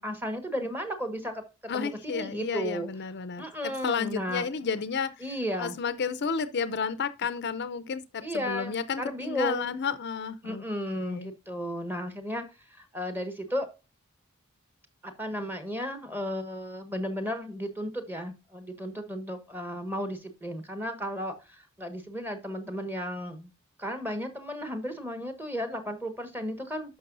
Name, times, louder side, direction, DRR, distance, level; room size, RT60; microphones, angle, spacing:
voice 1, 0.0-2.9 3.4-4.5 5.2-5.7 8.2-9.8 10.4-12.4 12.7-13.7 15.0-23.5 23.8-27.0, equal, 10° right, 1.4 m, -34 dB
voice 2, 1.7-5.2 5.6-10.6 10.9-11.3, left 5 dB, 55° left, 0.6 m, -32 dB
11.0 x 6.2 x 2.6 m
head